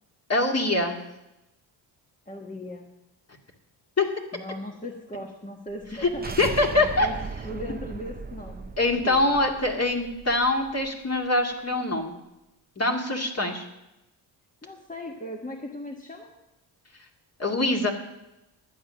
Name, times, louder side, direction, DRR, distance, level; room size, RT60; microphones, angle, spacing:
voice 1, 0.3-1.0 4.0-4.1 6.0-6.1 6.4-7.1 8.8-12.1 12.8-13.6 17.4-17.9, left 2 dB, 30° left, 2 dB, 2.3 m, -24 dB
voice 2, 2.3-2.9 4.3-6.3 6.7-7.1 7.4-8.7 9.0-9.4 13.4-13.6 14.6-16.3, left 1 dB, 15° left, 1 dB, 1.5 m, -38 dB
sound 1, 5.8-10.9, right 4 dB, 20° right, 0.7 m, -38 dB
11.5 x 8.9 x 6.5 m, 0.93 s
cardioid pair, 75°, 47 cm